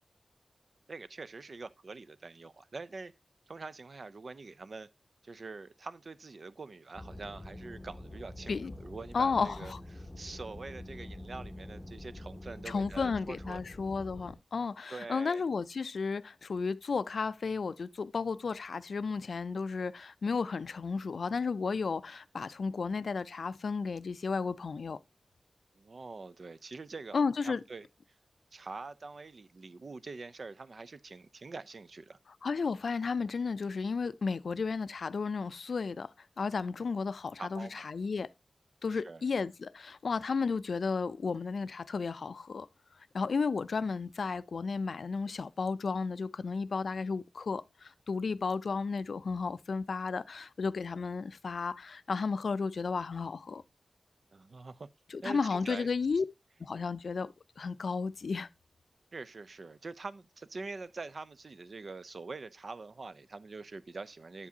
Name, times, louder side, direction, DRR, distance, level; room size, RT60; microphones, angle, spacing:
voice 1, 0.9-3.1 3.5-4.9 5.2-13.6 14.9-15.4 25.7-27.2 27.4-27.9 28.5-32.2 37.4-37.9 38.9-39.3 43.8-43.9 54.3-54.9 55.2-55.9 59.1-64.5, right 3 dB, 55° right, 0.4 m, -45 dB
sound 1, 6.9-14.4, left 1 dB, 20° left, 0.8 m, -46 dB
voice 2, 9.1-9.8 12.7-25.0 27.1-27.6 32.4-38.3 38.8-42.7 43.1-53.6 55.1-56.2 56.6-58.5, left 4 dB, 75° left, 0.3 m, -33 dB
8.2 x 7.2 x 2.7 m
wide cardioid pair, 100°, 0 cm